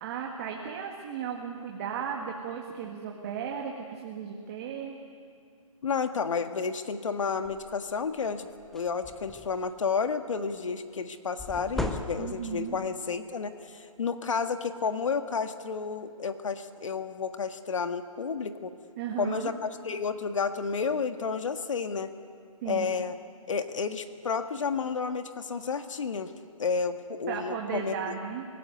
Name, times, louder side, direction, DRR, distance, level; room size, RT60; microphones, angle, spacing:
voice 1, 0.0-5.0 12.2-12.8 19.0-19.5 22.6-22.9 27.3-28.5, right 7 dB, 25° right, 0 dB, 1.9 m, -35 dB
voice 2, 5.8-8.5 8.7-18.7 19.2-22.1 22.7-23.2 23.5-26.3 26.6-28.2, left 5 dB, 60° left, 8 dB, 1.7 m, -31 dB
sound 1, 7.4-7.7 8.2-8.3 8.6-9.7 11.4-12.6, left 1 dB, ahead, 0.7 m, -36 dB
26.5 x 17.0 x 9.6 m, 2.2 s
hypercardioid pair, 155°, 18 cm